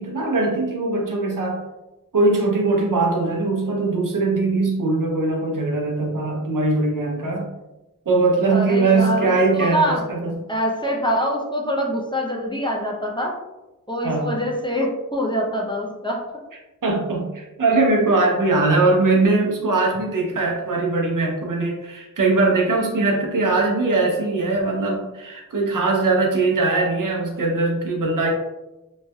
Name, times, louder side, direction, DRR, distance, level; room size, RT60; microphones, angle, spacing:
voice 1, 0.0-1.6 2.1-7.5 8.1-10.4 14.0-14.3 16.8-28.3, right 3 dB, 70° right, 0 dB, 0.7 m, -21 dB
voice 2, 8.5-10.0 10.5-13.3 13.9-16.2, equal, 15° left, -2 dB, 0.5 m, -24 dB
3.1 x 2.6 x 2.3 m, 1.0 s
wide cardioid pair, 60°, 33 cm